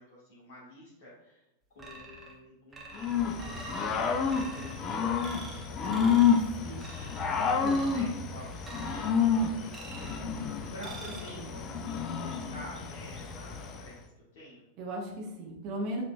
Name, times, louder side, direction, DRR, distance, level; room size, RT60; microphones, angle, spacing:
voice 1, 0.0-1.4 1.7-14.6, left 1 dB, 55° left, -6 dB, 1.2 m, -50 dB
sound 1, 1.8-2.4 2.7-3.9 4.3-4.8 5.2-5.6 5.9-6.4 6.8-7.3 7.6-8.1 8.6-9.2 9.7-10.3 10.8-11.3, right 2 dB, 15° right, 1.0 m, -45 dB
Growling / Cricket, 3.0-13.9, left 6 dB, 30° left, 0.5 m, -29 dB
voice 2, 14.8-16.0, right 1 dB, 40° right, -2 dB, 1.1 m, -37 dB
7.2 x 3.2 x 2.3 m, 0.92 s
figure-of-eight pair, 90°, 0 cm